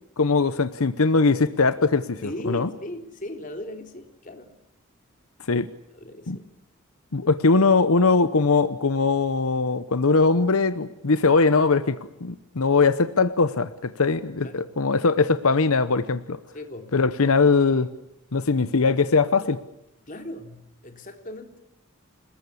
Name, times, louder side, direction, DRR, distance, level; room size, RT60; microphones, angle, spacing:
voice 1, 0.2-2.7 5.5-5.7 6.3-6.4 7.1-16.4 16.9-17.9 18.3-19.6, left 4 dB, 85° left, 13 dB, 0.9 m, -21 dB
voice 2, 2.2-4.5 5.9-6.5 14.4-14.7 16.5-16.9 20.0-21.6, left 1 dB, 40° left, 5 dB, 3.3 m, -37 dB
28.5 x 20.0 x 8.5 m, 0.87 s
head